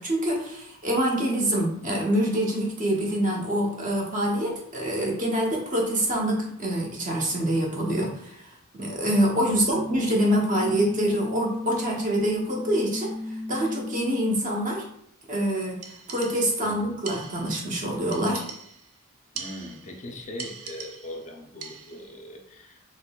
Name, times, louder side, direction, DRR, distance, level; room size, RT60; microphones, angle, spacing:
voice 1, 0.0-8.5 8.7-13.1 13.5-14.8 15.3-15.8 16.1-18.5, right 1 dB, 35° right, -1 dB, 0.8 m, -25 dB
voice 2, 9.4-9.8 16.6-16.9 19.3-22.8, left 1 dB, 35° left, 2 dB, 0.4 m, -40 dB
sound 1, 9.7-14.7, left 2 dB, 15° right, 1.4 m, -34 dB
sound 2, 15.8-16.7 17.0-17.7 18.1-18.9 19.3-20.0 20.4-21.3 21.6-22.1, right 6 dB, 75° right, 0.4 m, -41 dB
3.6 x 2.9 x 2.3 m, 0.73 s
head